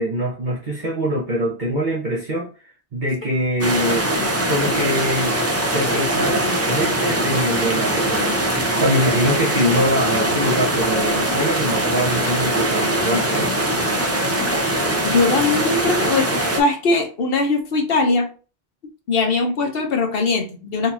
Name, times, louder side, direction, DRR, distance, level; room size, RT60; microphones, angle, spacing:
voice 1, 0.0-2.5 2.9-4.2 4.5-13.5, equal, 50° right, 1.1 m, -23 dB
sound 1, 3.6-16.6, right 1 dB, 25° right, 0.4 m, -21 dB
voice 2, 15.0-18.3 19.1-20.9, left 3 dB, 65° left, 1.0 m, -20 dB
4.0 x 2.8 x 2.4 m
omnidirectional pair, 1.1 m